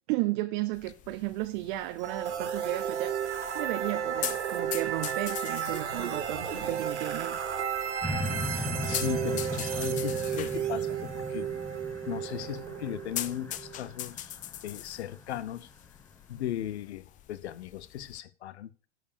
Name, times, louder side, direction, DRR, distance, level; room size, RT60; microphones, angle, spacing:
voice 1, 0.1-3.2 3.5-7.4, right 18 dB, 45° right, 0.7 m, -33 dB
sound 1, 0.7-18.2, left 12 dB, 25° left, 0.5 m, -43 dB
sound 2, 2.0-13.8, right 8 dB, 80° right, 2.9 m, -33 dB
sound 3, 8.0-15.4 16.0-16.1, left 1 dB, 5° left, 1.2 m, -38 dB
voice 2, 8.4-11.5 12.1-15.7 16.3-18.9, left 12 dB, 70° left, 0.9 m, -37 dB
11.0 x 5.2 x 6.8 m
hypercardioid pair, 110°, 35 cm